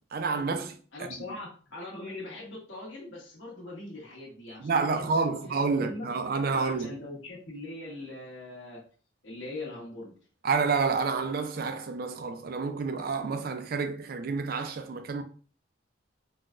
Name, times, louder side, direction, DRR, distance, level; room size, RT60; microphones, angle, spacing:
voice 1, 0.1-0.8 4.6-6.9 10.4-15.2, right 4 dB, 50° right, 0.4 m, -29 dB
voice 2, 0.9-5.4 5.7-6.0 6.5-8.8 9.2-10.1, left 2 dB, 70° left, 1.2 m, -41 dB
4.0 x 2.2 x 2.4 m
head